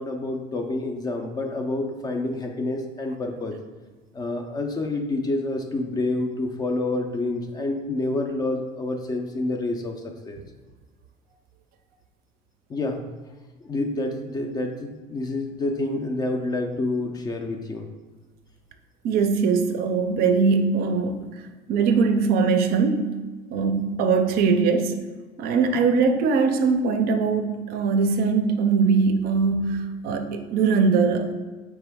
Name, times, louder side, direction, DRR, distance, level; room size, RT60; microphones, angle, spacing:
voice 1, 0.0-3.6 4.1-10.0 10.2-10.4 12.7-13.0 13.6-17.9, left 2 dB, 20° left, 4 dB, 0.3 m, -28 dB
voice 2, 19.0-21.4 21.7-23.2 23.5-25.0 25.4-31.3, right 5 dB, 55° right, 7 dB, 0.4 m, -21 dB
4.4 x 3.1 x 3.4 m, 1.3 s
cardioid pair, 160°, 18 cm